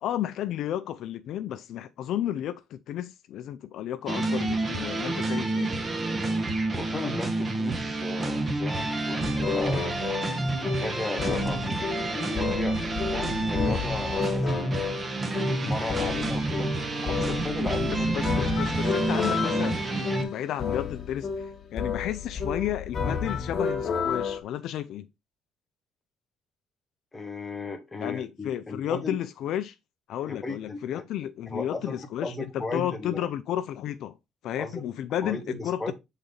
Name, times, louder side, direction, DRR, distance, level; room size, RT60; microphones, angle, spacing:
voice 1, 0.0-5.7 18.1-25.1 28.0-29.8 30.1-32.3 32.7-34.2 34.4-35.9, left 11 dB, 65° left, 0.4 m, -32 dB
sound 1, 4.1-20.2, right 2 dB, 25° right, 1.1 m, -29 dB
voice 2, 6.7-9.8 10.6-12.8 13.1-14.7 15.5-16.7 17.0-18.4 27.1-29.2 30.3-31.0 31.5-32.0 32.2-33.3 34.6-34.7 35.2-35.9, left 3 dB, 15° left, 1.5 m, -35 dB
sound 2, 9.2-24.4, left 6 dB, 40° left, 1.2 m, -31 dB
6.6 x 4.0 x 3.8 m
cardioid pair, 135°, 0 cm